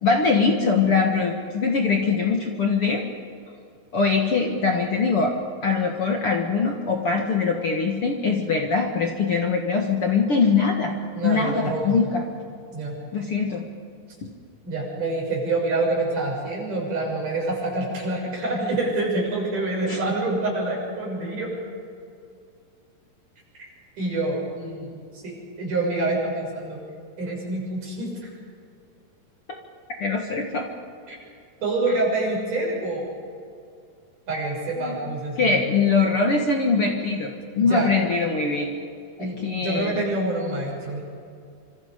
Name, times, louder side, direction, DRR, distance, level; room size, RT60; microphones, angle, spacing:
voice 1, 0.0-3.0 3.9-5.3 5.6-10.9 11.2-12.2 13.1-13.6 19.9-20.0 30.0-30.6 34.8-35.0 35.4-38.7 39.2-40.0, left 4 dB, 60° left, 2 dB, 1.5 m, -22 dB
voice 2, 11.1-12.0 12.7-13.0 14.6-21.5 23.6-23.7 24.0-26.8 27.2-28.1 31.1-31.2 31.6-33.1 34.3-35.6 37.6-37.9 39.2-41.0, right 2 dB, 45° right, -3 dB, 8.1 m, -27 dB
27.5 x 26.0 x 5.3 m, 2.3 s
omnidirectional pair, 5.1 m